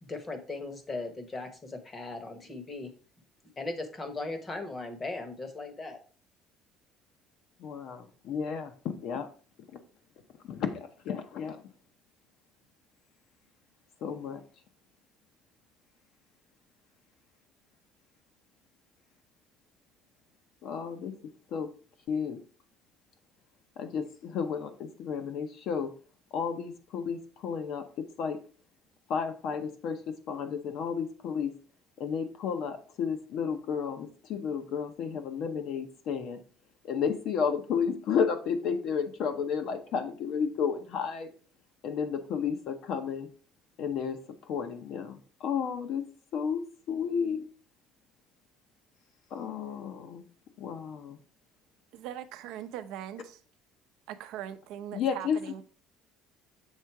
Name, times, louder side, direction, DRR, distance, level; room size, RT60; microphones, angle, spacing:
voice 1, 0.0-2.9 3.6-6.0, left 3 dB, 20° left, 0.9 m, -38 dB
voice 2, 7.6-9.3 9.7-9.8 10.5-11.6 14.0-14.4 20.6-21.1 21.5-21.7 22.1-22.4 23.8-25.9 26.3-28.4 29.1-31.5 32.0-36.4 36.8-41.3 41.8-43.3 43.8-44.2 44.5-47.5 49.3-50.2 50.6-51.2 54.9-55.4, left 6 dB, 50° left, 0.8 m, -32 dB
voice 3, 51.9-53.4 54.1-55.6, right 11 dB, 65° right, 0.6 m, -41 dB
7.3 x 3.7 x 4.6 m
cardioid pair, 175°, 0 cm